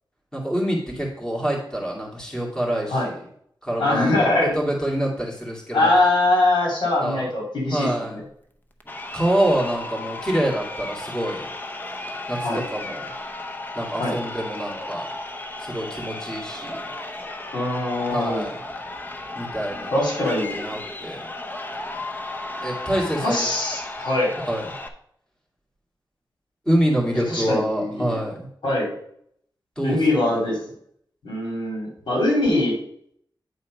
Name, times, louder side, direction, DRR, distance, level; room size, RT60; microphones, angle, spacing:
voice 1, 0.3-3.2 3.6-5.9 7.0-7.3 7.7-8.2 9.1-11.5 12.3-13.1 13.7-15.1 15.6-16.8 18.1-18.6 19.4-19.9 20.5-21.2 22.6-23.5 24.5-24.6 26.7-28.5 29.8-30.5, right 1 dB, 10° left, -3 dB, 2.2 m, -26 dB
voice 2, 3.8-4.6 5.7-7.9 8.1-8.2 12.4-12.6 14.0-14.1 17.5-18.5 19.9-20.5 23.2-24.3 27.3-28.1 28.6-28.9 29.8-30.6 31.2-32.8, left 2 dB, 85° left, -2 dB, 3.0 m, -22 dB
Crowd, 8.8-24.9, left 2 dB, 25° left, 0.7 m, -34 dB
9.5 x 4.2 x 5.2 m, 0.67 s
wide cardioid pair, 115°, 8 cm